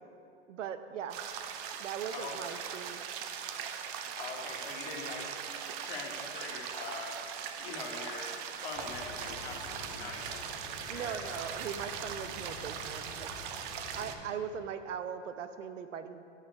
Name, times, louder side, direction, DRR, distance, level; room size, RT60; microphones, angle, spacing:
voice 1, 0.5-1.2 1.7-3.0 10.9-13.3 13.9-16.3, right 8 dB, 80° right, 10 dB, 0.6 m, -40 dB
sound 1, 1.1-14.1, right 8 dB, 35° right, 0.5 m, -40 dB
voice 2, 2.1-2.6 4.1-5.5 5.8-8.3 8.6-11.5, left 4 dB, 55° left, 0 dB, 1.6 m, -43 dB
sound 2, 8.7-14.2, left 3 dB, 35° left, 1.9 m, -49 dB
8.9 x 5.6 x 4.7 m, 2.6 s
hypercardioid pair, 125°, 37 cm